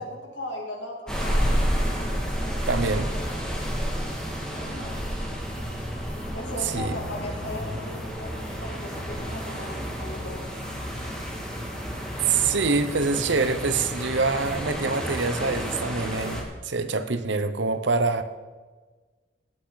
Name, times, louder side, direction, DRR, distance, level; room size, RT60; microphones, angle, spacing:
voice 1, 0.0-1.5 4.2-5.2 6.3-10.6, left 1 dB, 70° left, 0 dB, 2.7 m, -38 dB
sound 1, 1.1-16.4, equal, 5° left, 2.1 m, -30 dB
voice 2, 2.7-3.1 6.6-7.0 12.2-18.2, right 4 dB, 70° right, 10 dB, 0.9 m, -25 dB
18.5 x 8.7 x 4.0 m, 1.3 s
head